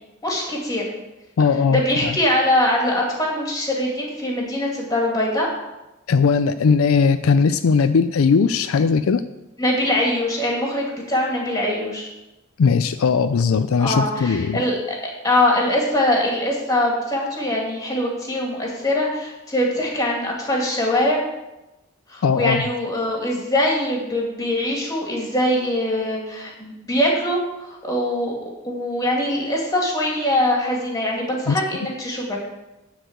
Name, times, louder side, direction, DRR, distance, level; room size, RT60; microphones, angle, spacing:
voice 1, 0.2-0.8 1.7-5.5 9.6-12.1 13.8-14.8 15.2-21.2 22.1-32.4, left 1 dB, 15° left, -1 dB, 2.3 m, -22 dB
voice 2, 1.4-2.2 6.1-9.2 12.6-14.6 22.2-22.7 31.5-31.6, left 5 dB, 75° left, 11 dB, 0.4 m, -18 dB
10.0 x 4.8 x 8.0 m, 0.99 s
head